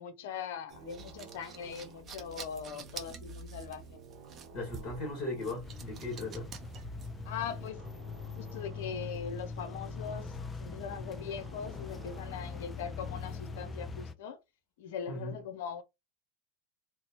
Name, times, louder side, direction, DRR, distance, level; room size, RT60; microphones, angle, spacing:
voice 1, 0.0-4.0 7.2-7.9 8.4-14.4 14.8-15.8, left 7 dB, 70° left, 0.5 m, -41 dB
sound 1, 0.7-7.7, right 6 dB, 35° right, 0.6 m, -49 dB
sound 2, 0.7-14.0, right 2 dB, 65° right, 0.9 m, -50 dB
voice 2, 4.5-6.5 15.1-15.4, left 2 dB, 40° left, 1.4 m, -38 dB
sound 3, 5.6-14.1, left 5 dB, 20° left, 0.4 m, -42 dB
2.6 x 2.0 x 2.8 m
hypercardioid pair, 90°, 0 cm